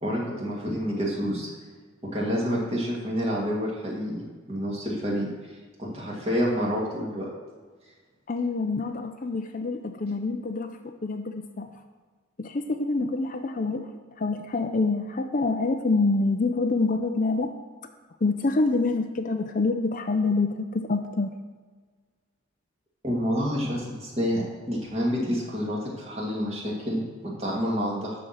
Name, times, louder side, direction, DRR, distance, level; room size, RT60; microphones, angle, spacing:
voice 1, 0.0-1.5 2.1-4.2 4.5-5.3 5.8-7.3 23.0-27.0 27.4-28.1, equal, 30° right, -4 dB, 2.2 m, -28 dB
voice 2, 8.3-11.7 12.4-13.9 14.2-17.5 18.2-21.3, left 3 dB, 40° left, 6 dB, 0.5 m, -26 dB
12.0 x 4.4 x 6.7 m, 1.5 s
head